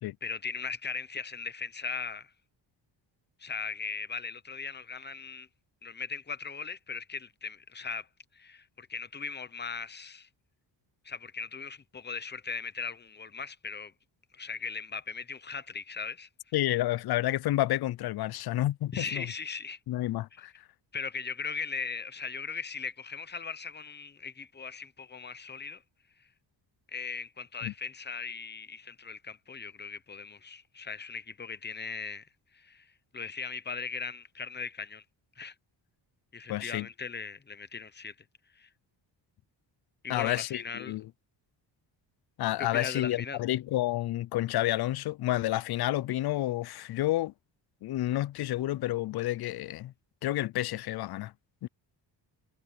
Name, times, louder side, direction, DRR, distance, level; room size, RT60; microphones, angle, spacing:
voice 1, 0.2-2.3 3.4-5.5 5.8-8.1 8.3-10.3 11.0-13.9 14.3-16.3 18.9-19.8 20.9-25.8 26.9-32.3 32.5-35.0 35.4-35.5 36.3-38.1 38.6-38.7 40.0-41.0 42.6-43.4, left 5 dB, 25° left, 0.8 m, -38 dB
voice 2, 16.5-19.3 19.9-20.5 27.6-27.7 36.5-36.9 40.1-41.1 42.4-47.3 47.8-49.9 50.2-51.3 51.6-51.7, left 15 dB, 60° left, 0.5 m, -30 dB
wide cardioid pair, 155°, 45 cm